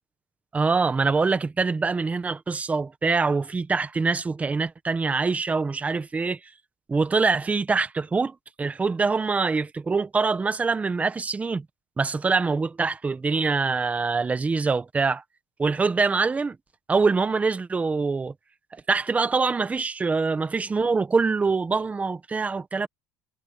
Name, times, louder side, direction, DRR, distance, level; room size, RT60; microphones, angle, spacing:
voice 1, 0.5-6.4 6.9-11.6 12.0-15.2 15.6-16.6 16.9-18.3 18.7-22.9, right 4 dB, 20° right, 1.3 m, -24 dB
cardioid pair, 120°, 8 cm